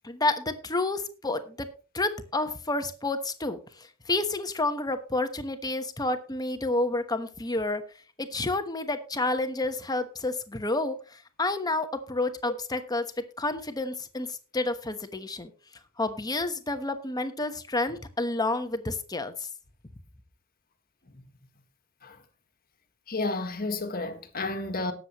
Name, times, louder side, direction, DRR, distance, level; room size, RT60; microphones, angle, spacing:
voice 1, 0.0-1.7 1.9-7.8 8.2-13.1 13.4-15.5 16.0-19.5, left 2 dB, 20° left, 1.1 m, -30 dB
voice 2, 23.1-24.9, left 2 dB, 40° left, 1.6 m, -31 dB
18.5 x 7.5 x 3.1 m
head